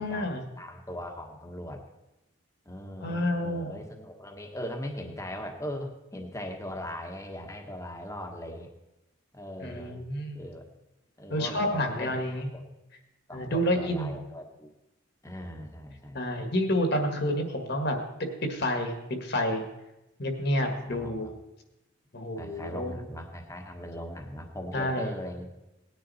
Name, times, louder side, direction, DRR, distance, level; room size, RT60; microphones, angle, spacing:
voice 1, 0.0-0.4 3.0-3.8 9.6-10.4 11.3-12.5 13.3-14.2 16.1-18.0 18.5-19.0 19.2-19.6 20.2-21.3 22.1-23.0 24.7-25.1, left 1 dB, 50° left, 4 dB, 1.7 m, -29 dB
voice 2, 0.6-1.8 2.6-8.7 9.3-10.0 10.3-10.7 11.2-12.6 13.3-14.7 15.2-16.5 20.7-21.3 22.4-25.5, left 1 dB, 15° left, 3 dB, 1.3 m, -39 dB
18.5 x 9.8 x 4.2 m, 0.96 s
head